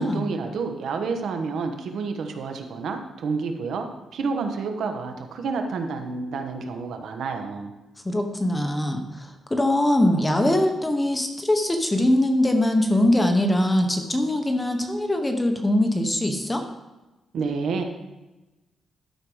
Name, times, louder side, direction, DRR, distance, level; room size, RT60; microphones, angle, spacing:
voice 1, 0.0-3.9 4.1-7.7 17.3-17.8, right 4 dB, 65° right, 5 dB, 1.2 m, -29 dB
voice 2, 8.0-16.6, left 1 dB, 10° left, 5 dB, 0.8 m, -22 dB
12.0 x 6.3 x 5.0 m, 1.1 s
wide cardioid pair, 180°, 0 cm